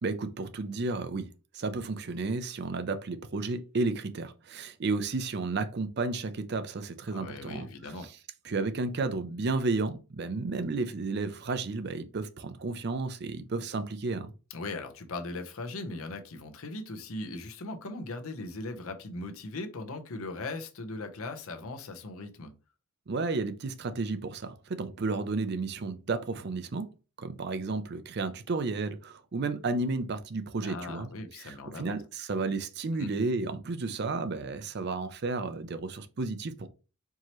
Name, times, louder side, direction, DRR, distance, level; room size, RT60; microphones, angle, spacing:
voice 1, 0.0-7.7 8.4-14.3 23.1-26.9 27.2-31.1 31.4-36.7, right 3 dB, 50° right, 0.5 m, -32 dB
voice 2, 7.1-8.1 14.5-22.5 30.6-32.0 32.5-32.6 33.0-33.1, left 2 dB, 75° left, 0.8 m, -39 dB
4.6 x 2.8 x 3.0 m
head